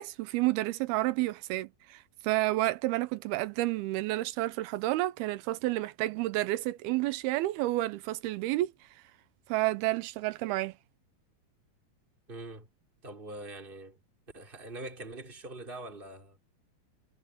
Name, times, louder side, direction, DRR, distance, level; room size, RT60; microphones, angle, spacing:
voice 1, 0.0-8.7 9.5-10.7, right 17 dB, 80° right, 2.5 m, -30 dB
voice 2, 12.3-12.7 13.0-14.0 14.3-16.4, right 2 dB, 10° right, 4.6 m, -43 dB
omnidirectional pair, 4.7 m